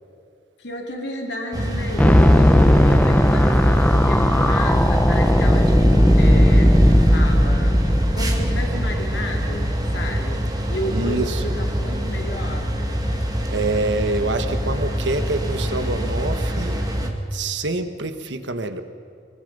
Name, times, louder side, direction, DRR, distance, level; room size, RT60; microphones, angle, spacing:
voice 1, 0.6-7.8 8.1-12.7, left 1 dB, 70° left, 1 dB, 2.6 m, -32 dB
sound 1, 1.5-17.1, equal, 20° right, 2.1 m, -25 dB
sound 2, 2.0-10.0, equal, 10° left, 0.8 m, -16 dB
voice 2, 10.9-11.4 13.5-18.8, right 2 dB, 85° right, 9 dB, 1.4 m, -26 dB
24.0 x 22.0 x 5.4 m, 2.5 s
head